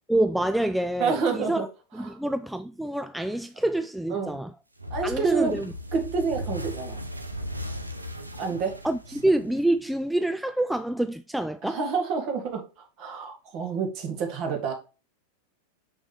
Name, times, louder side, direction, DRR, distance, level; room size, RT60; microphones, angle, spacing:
voice 1, 0.1-1.7 1.9-4.5 5.0-5.7 8.8-11.8, right 1 dB, ahead, 0.3 m, -27 dB
voice 2, 1.0-1.7 2.1-2.2 4.1-4.4 4.9-5.6 5.9-7.0 8.4-8.8 11.6-12.7 13.0-14.7, right 5 dB, 40° right, 1.9 m, -28 dB
sound 1, 4.8-9.9, equal, 85° right, 0.8 m, -37 dB
6.2 x 6.0 x 3.3 m
figure-of-eight pair, 90°, 0 cm